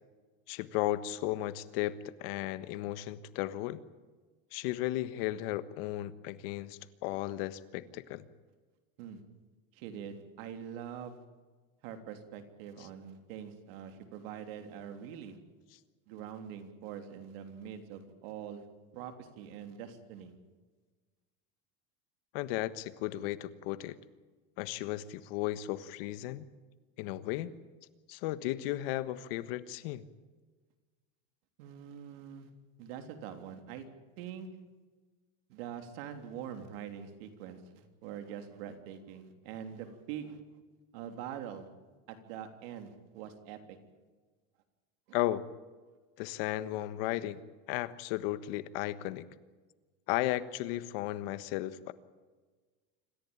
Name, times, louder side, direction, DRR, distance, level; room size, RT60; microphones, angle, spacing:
voice 1, 0.5-3.8 4.5-8.2 22.3-24.0 24.6-26.5 27.0-27.5 28.1-30.0 45.1-45.5 46.2-47.4 47.7-49.2 50.1-51.9, left 15 dB, 75° left, 14 dB, 1.4 m, -35 dB
voice 2, 9.7-11.2 11.8-15.4 16.1-18.6 18.9-20.3 31.6-32.5 32.8-33.8 34.2-34.5 35.5-40.4 40.9-41.7 42.1-43.8 45.1-45.2, right 8 dB, 80° right, 7 dB, 3.3 m, -44 dB
26.5 x 14.5 x 8.8 m, 1.4 s
cardioid pair, 145°, 29 cm